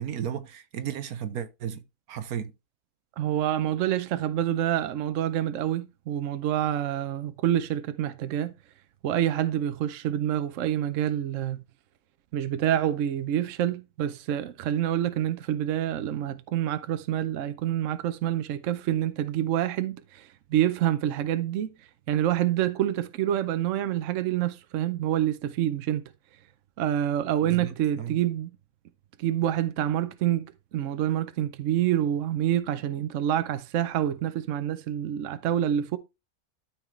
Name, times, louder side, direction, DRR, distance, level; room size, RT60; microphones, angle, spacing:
voice 1, 0.0-2.5 27.4-28.2, right 9 dB, 80° right, 1.3 m, -34 dB
voice 2, 3.2-8.5 9.0-11.6 12.3-21.7 22.1-26.1 26.8-28.5 29.2-36.0, right 11 dB, 65° right, 1.0 m, -27 dB
12.5 x 4.6 x 3.2 m
omnidirectional pair, 1.5 m